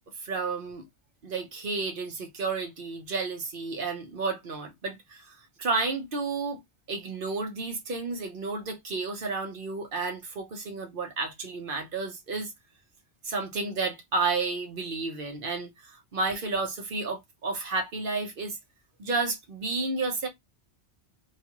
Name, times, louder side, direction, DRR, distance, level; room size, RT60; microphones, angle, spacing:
voice 1, 0.2-0.8 1.2-6.6 6.9-12.5 13.2-18.6 19.0-20.3, right 3 dB, 50° right, 1.0 m, -31 dB
3.0 x 2.4 x 2.9 m
omnidirectional pair, 1.2 m